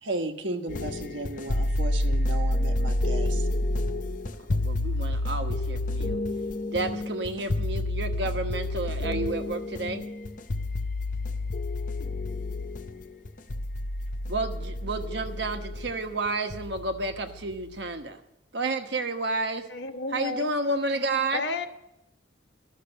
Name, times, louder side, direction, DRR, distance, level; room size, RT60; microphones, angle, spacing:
voice 1, 0.0-3.5, right 2 dB, 85° right, 5 dB, 1.3 m, -34 dB
sound 1, 0.7-17.9, left 1 dB, 45° left, 0.6 m, -29 dB
voice 2, 4.5-6.2 6.7-10.0 14.3-18.2 18.5-19.6 20.1-21.4, right 2 dB, 65° right, 6 dB, 1.2 m, -31 dB
voice 3, 19.7-20.5 21.3-21.7, left 3 dB, 65° left, 5 dB, 1.2 m, -32 dB
13.0 x 6.6 x 9.7 m, 0.86 s
head